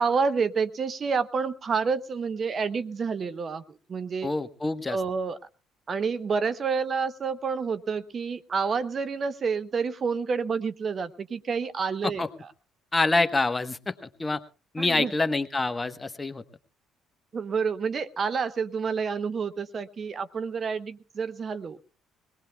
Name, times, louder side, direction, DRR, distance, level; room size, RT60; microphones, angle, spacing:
voice 1, 0.0-4.3 4.9-5.4 5.9-12.2 14.8-15.1 17.3-21.8, right 5 dB, 45° right, 14 dB, 0.8 m, -29 dB
voice 2, 4.2-5.0 12.0-12.3 12.9-14.4 14.7-16.4, left 3 dB, 20° left, 10 dB, 1.1 m, -26 dB
22.5 x 18.5 x 2.3 m, 0.35 s
supercardioid pair, 70°, 0 cm